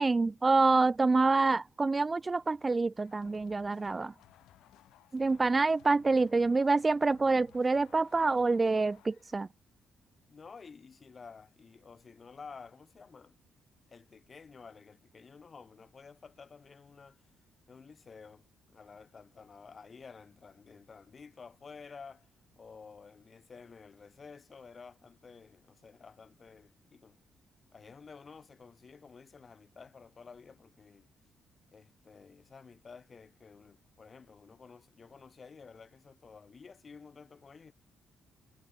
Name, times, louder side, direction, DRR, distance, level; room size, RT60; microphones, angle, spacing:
voice 1, 0.0-4.1 5.1-9.5, right 3 dB, 25° right, 0.4 m, -27 dB
sound 1, 3.0-9.5, left 14 dB, 85° left, 3.8 m, -61 dB
voice 2, 10.3-13.4 13.9-17.3 17.7-27.2 27.7-31.1 31.7-37.7, left 5 dB, 40° left, 4.5 m, -52 dB
cardioid pair, 90°, 0 cm